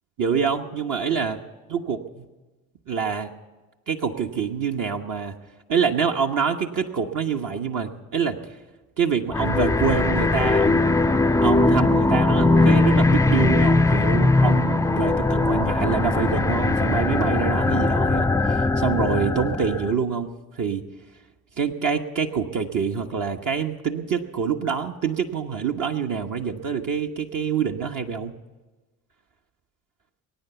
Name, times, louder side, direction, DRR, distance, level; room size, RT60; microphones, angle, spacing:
voice 1, 0.2-1.4 1.7-2.2 2.9-3.3 3.9-5.3 5.7-8.4 9.0-10.9 11.4-20.8 21.6-28.3, right 6 dB, 50° right, 3 dB, 1.2 m, -26 dB
sound 1, 9.3-19.9, left 2 dB, 10° left, 0.4 m, -20 dB
21.0 x 9.2 x 7.0 m, 1.2 s
hypercardioid pair, 60°, 41 cm